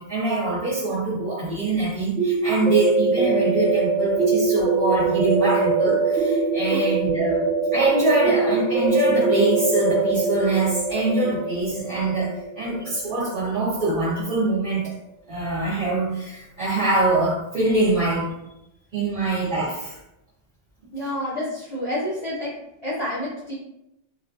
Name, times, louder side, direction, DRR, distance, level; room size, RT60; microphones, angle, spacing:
voice 1, 0.0-12.3 12.6-14.8 15.3-18.3 18.9-20.0, right 2 dB, 50° right, -9 dB, 0.7 m, -24 dB
sound 1, 2.2-13.9, right 3 dB, 85° right, 1.0 m, -23 dB
voice 2, 20.9-22.5 22.8-23.5, left 1 dB, 45° left, -8 dB, 0.5 m, -28 dB
2.4 x 2.3 x 2.3 m, 0.87 s
omnidirectional pair, 1.3 m